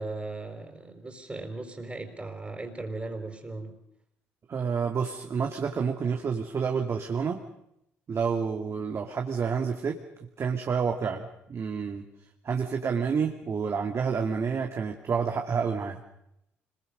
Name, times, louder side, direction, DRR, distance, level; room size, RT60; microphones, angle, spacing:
voice 1, 0.0-3.7, right 2 dB, 20° right, 4 dB, 4.6 m, -37 dB
voice 2, 4.5-7.4 8.1-10.0 10.4-12.0 12.4-16.0, right 6 dB, 45° right, 3 dB, 2.3 m, -29 dB
26.0 x 22.0 x 6.6 m, 0.78 s
hypercardioid pair, 55°, 6 cm